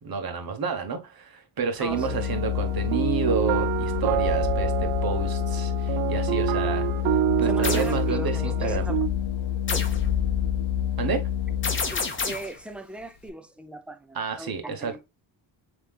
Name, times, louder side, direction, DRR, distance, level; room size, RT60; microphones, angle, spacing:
voice 1, 0.0-6.9 7.4-8.9 11.0-11.3 14.1-15.0, right 6 dB, 50° right, 1.1 m, -30 dB
Organ, 1.8-12.1, left 9 dB, 75° left, 0.7 m, -27 dB
sound 1, 1.9-9.1, right 15 dB, 75° right, 0.6 m, -28 dB
voice 2, 7.4-9.0 9.7-9.9 11.9-15.0, right 1 dB, ahead, 0.5 m, -38 dB
sound 2, 7.6-7.9 9.7-10.0 11.6-12.6, left 4 dB, 25° left, 0.9 m, -29 dB
7.3 x 3.0 x 2.3 m
cardioid pair, 135°, 47 cm